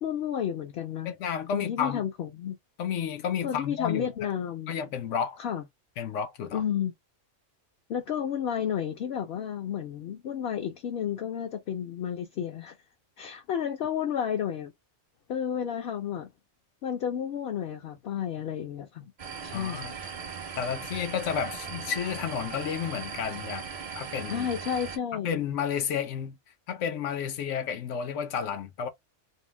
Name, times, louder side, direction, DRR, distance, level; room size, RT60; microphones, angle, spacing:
voice 1, 0.0-1.1 1.5-2.6 3.4-4.7 5.4-5.6 6.5-6.9 7.9-12.8 13.2-14.7 15.3-16.3 16.8-19.1 19.4-19.9 24.3-25.4, left 9 dB, 65° left, 0.7 m, -31 dB
voice 2, 1.0-2.1 2.8-4.3 4.7-5.4 6.0-6.6 19.5-20.0 20.6-23.7 23.9-24.5 25.2-26.4 26.7-28.9, left 7 dB, 90° left, 1.0 m, -31 dB
sound 1, 19.2-25.0, right 6 dB, 45° right, 0.4 m, -38 dB
2.6 x 2.0 x 3.1 m
omnidirectional pair, 1.2 m